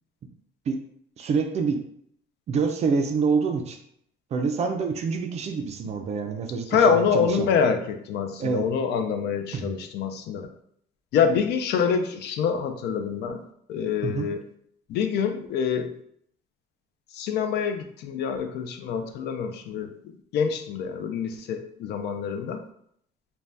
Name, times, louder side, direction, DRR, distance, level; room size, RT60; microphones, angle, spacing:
voice 1, 1.2-1.8 2.5-3.8 4.3-7.5 8.4-8.7 9.5-9.7 14.0-14.3, right 5 dB, 35° right, 5 dB, 0.4 m, -26 dB
voice 2, 6.7-10.5 11.1-13.4 13.7-14.4 14.9-15.9 17.1-19.9 20.3-22.6, left 6 dB, 65° left, 6 dB, 0.4 m, -26 dB
2.6 x 2.2 x 3.3 m, 0.68 s
cardioid pair, 155°, 19 cm